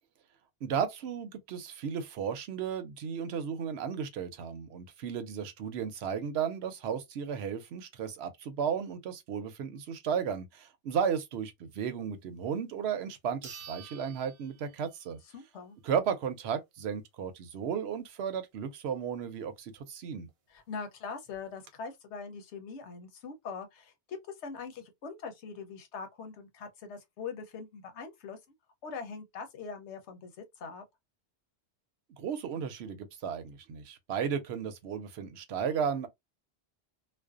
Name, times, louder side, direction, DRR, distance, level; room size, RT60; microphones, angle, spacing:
voice 1, 0.6-15.2 15.8-20.3 32.2-36.1, right 7 dB, 75° right, 0.8 m, -34 dB
sound 1, 12.6-12.7 13.4-15.2 15.6-15.7 20.3-20.4 20.6-20.7 21.3-21.7, right 7 dB, 50° right, 0.4 m, -50 dB
voice 2, 15.3-15.8 20.5-28.4 28.8-30.8, left 5 dB, 90° left, 1.0 m, -42 dB
2.5 x 2.1 x 2.3 m
omnidirectional pair, 1.1 m